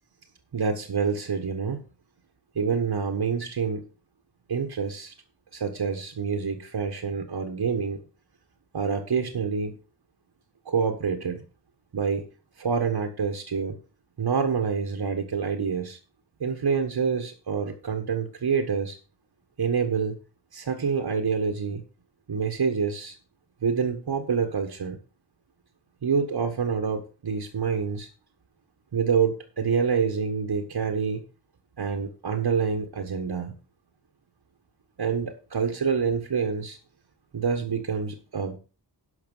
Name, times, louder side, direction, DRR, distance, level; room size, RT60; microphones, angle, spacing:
voice 1, 0.5-1.8 2.5-3.8 4.5-5.1 5.5-8.0 8.7-9.8 10.6-11.4 11.9-12.3 12.6-13.8 14.2-16.0 16.4-19.0 19.6-20.2 20.5-21.8 22.3-23.1 23.6-25.0 26.0-28.1 28.9-31.2 31.8-33.5 35.0-36.8 37.3-38.5, right 6 dB, 80° right, 2 dB, 1.6 m, -27 dB
11.5 x 5.9 x 5.6 m, 0.34 s
cardioid pair, 55°, 41 cm